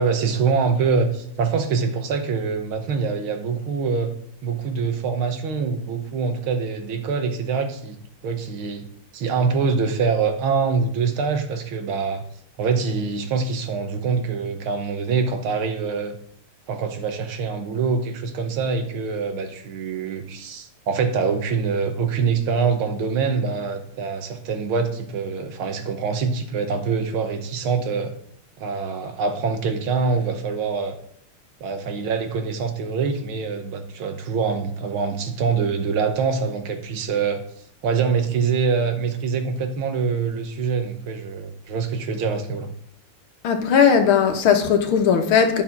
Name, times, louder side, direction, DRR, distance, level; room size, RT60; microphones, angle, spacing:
voice 1, 0.0-4.1 4.4-8.9 9.1-12.2 12.6-16.2 16.7-28.1 28.6-31.0 31.6-37.4 37.8-42.7, right 5 dB, 75° right, 1.8 m, -24 dB
voice 2, 43.4-45.6, left 7 dB, 70° left, 1.9 m, -18 dB
11.0 x 5.6 x 5.9 m
omnidirectional pair, 2.4 m